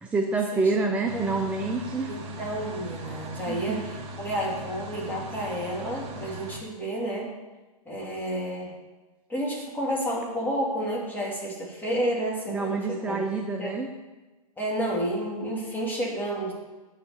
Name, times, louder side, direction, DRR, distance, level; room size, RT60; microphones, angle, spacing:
voice 1, 0.0-2.1 3.5-3.9 12.5-13.9, right 3 dB, 5° right, 2 dB, 0.6 m, -27 dB
sound 1, 1.1-6.6, equal, 30° right, 1.6 m, -39 dB
voice 2, 2.1-7.3 7.9-8.7 9.3-13.2 13.6-13.7 14.6-16.5, right 1 dB, 10° left, -4 dB, 2.8 m, -30 dB
9.0 x 6.6 x 7.1 m, 1.2 s
hypercardioid pair, 125°, 19 cm